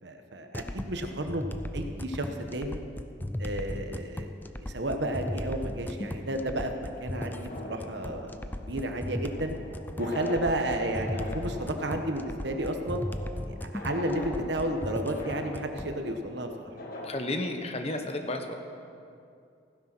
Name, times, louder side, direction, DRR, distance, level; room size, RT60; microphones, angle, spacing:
voice 1, 0.0-2.8 3.4-4.3 4.6-8.3 8.6-9.6 10.0-13.0 13.5-16.7, right 1 dB, 65° right, 5 dB, 1.2 m, -32 dB
sound 1, 0.5-16.0, left 1 dB, 10° left, 0.4 m, -37 dB
sound 2, 7.1-17.1, left 1 dB, 50° left, 1.7 m, -42 dB
voice 2, 17.0-18.5, left 2 dB, 30° left, 5 dB, 1.1 m, -32 dB
15.5 x 10.0 x 6.1 m, 2.5 s
head